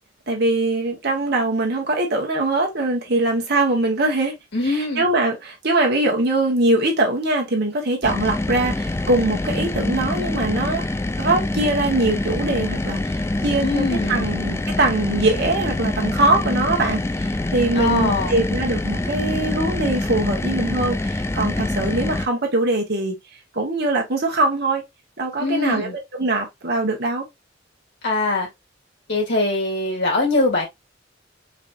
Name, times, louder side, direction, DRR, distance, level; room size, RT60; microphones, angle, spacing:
voice 1, 0.3-4.3 5.0-10.8 11.2-23.2 23.5-24.8 25.2-25.9 26.2-27.3, right 2 dB, 55° right, 1.5 m, -22 dB
voice 2, 4.5-5.1 13.6-14.3 17.7-18.4 25.4-25.9 28.0-28.5 29.1-30.7, left 2 dB, 60° left, 2.6 m, -22 dB
sound 1, 8.0-22.3, left 2 dB, 15° left, 0.3 m, -25 dB
4.8 x 3.3 x 2.6 m
head